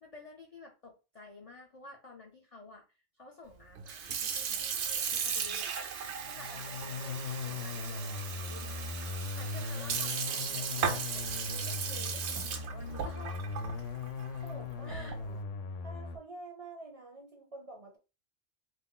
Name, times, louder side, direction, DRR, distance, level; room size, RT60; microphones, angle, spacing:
voice 1, 0.0-5.7 6.2-7.2 7.5-8.9 9.4-13.4 14.9-15.2, left 3 dB, 55° left, 0.4 m, -51 dB
Sink (filling or washing) / Fill (with liquid), 3.8-15.3, right 7 dB, 70° right, 0.8 m, -36 dB
sound 1, 6.2-16.2, left 4 dB, 90° left, 0.9 m, -39 dB
voice 2, 14.4-15.4 15.8-18.0, right 2 dB, 40° right, 0.5 m, -47 dB
2.5 x 2.3 x 3.6 m
omnidirectional pair, 1.2 m